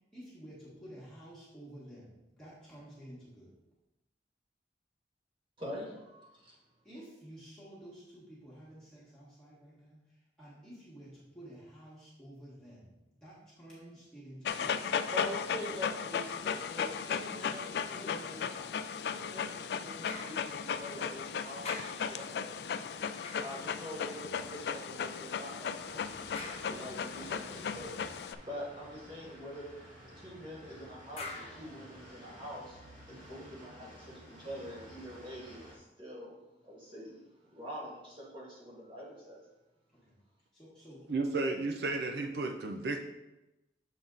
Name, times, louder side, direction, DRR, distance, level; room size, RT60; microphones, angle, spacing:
voice 1, 0.0-3.5 6.5-6.6 6.8-12.9 13.2-14.8 16.4-16.6 17.0-17.3 17.9-18.8 33.4-33.5 40.0-40.1 40.5-41.1, equal, 5° left, -10 dB, 1.6 m, -51 dB
voice 2, 5.6-6.6 15.1-16.4 16.7-18.4 19.1-22.6 23.4-29.7 30.0-32.8 33.1-36.3 36.6-39.4, equal, 30° right, -5 dB, 1.9 m, -45 dB
Dog, 14.4-28.4, left 7 dB, 65° left, 0.3 m, -36 dB
sound 1, 20.1-21.3 21.6-24.5 26.3-27.3 31.2-32.6 33.2-33.3, left 3 dB, 35° left, 0.7 m, -48 dB
sound 2, 25.8-35.8, equal, 45° right, 1.6 m, -53 dB
voice 3, 41.1-43.0, right 3 dB, 65° right, 4 dB, 0.5 m, -33 dB
7.3 x 4.1 x 3.8 m, 0.97 s
head